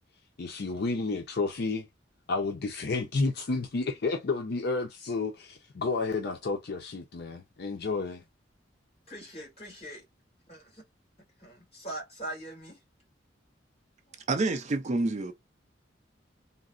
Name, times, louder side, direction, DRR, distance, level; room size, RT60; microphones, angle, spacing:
voice 1, 0.4-1.9 2.3-8.2, left 3 dB, 60° left, 0.5 m, -31 dB
voice 2, 9.1-10.0 10.5-10.8 11.4-12.8 14.1-14.2, right 1 dB, 35° left, 2.3 m, -42 dB
voice 3, 14.3-15.3, right 2 dB, 40° right, 0.4 m, -28 dB
3.8 x 2.0 x 2.4 m
head